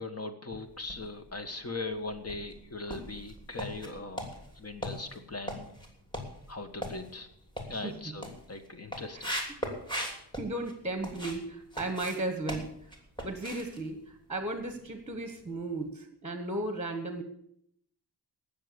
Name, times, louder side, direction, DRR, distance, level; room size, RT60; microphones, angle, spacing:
voice 1, 0.0-4.3 4.6-5.7 6.5-7.3 7.7-9.3, left 3 dB, 35° left, 7 dB, 1.6 m, -39 dB
sound 1, 0.7-1.5 1.9-11.4 11.7-14.9 15.1-15.4 15.8-15.9, equal, 10° left, 3.0 m, -40 dB
voice 2, 7.8-8.1 9.1-9.2 10.4-12.7 13.2-17.2, right 2 dB, 15° right, 7 dB, 1.4 m, -35 dB
17.5 x 6.9 x 6.9 m, 0.69 s
wide cardioid pair, 110°, 40 cm